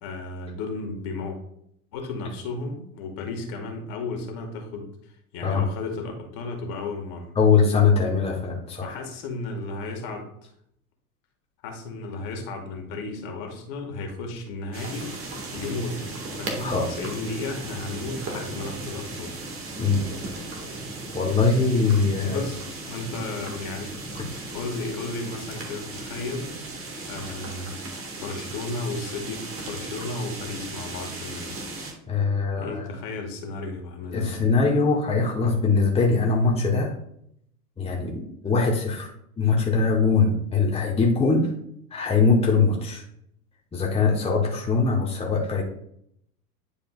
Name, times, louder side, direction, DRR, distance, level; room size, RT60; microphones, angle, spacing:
voice 1, 0.0-1.4 1.9-4.9 5.3-7.3 8.8-10.5 11.6-15.1 15.5-16.1 16.4-19.6 22.2-22.6 22.9-24.1 24.5-26.5 27.1-27.8 28.2-31.6 32.6-34.5, left 3 dB, 50° left, 3 dB, 1.9 m, -34 dB
voice 2, 7.4-8.9 16.6-16.9 18.3-18.5 19.8-20.1 21.1-22.4 24.1-24.2 32.1-32.9 34.1-36.9 37.8-39.1 39.4-41.5 41.9-43.0 43.7-45.6, left 4 dB, 15° left, -1 dB, 1.2 m, -22 dB
sound 1, 14.7-31.9, right 2 dB, 30° right, 1.9 m, -36 dB
10.0 x 5.0 x 2.4 m, 0.71 s
figure-of-eight pair, 90°, 46 cm